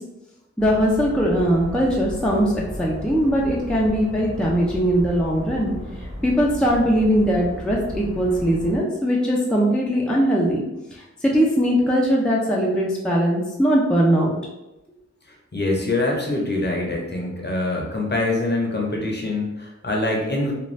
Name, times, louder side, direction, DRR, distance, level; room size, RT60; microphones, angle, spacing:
voice 1, 0.6-5.7 6.2-10.6 10.9-14.3, equal, 5° left, -3 dB, 0.5 m, -20 dB
sound 1, 0.6-8.8, equal, 25° right, 1.3 m, -35 dB
voice 2, 15.3-20.5, left 2 dB, 35° left, -1 dB, 0.8 m, -24 dB
2.6 x 2.3 x 3.1 m, 0.96 s
cardioid pair, 45°, 29 cm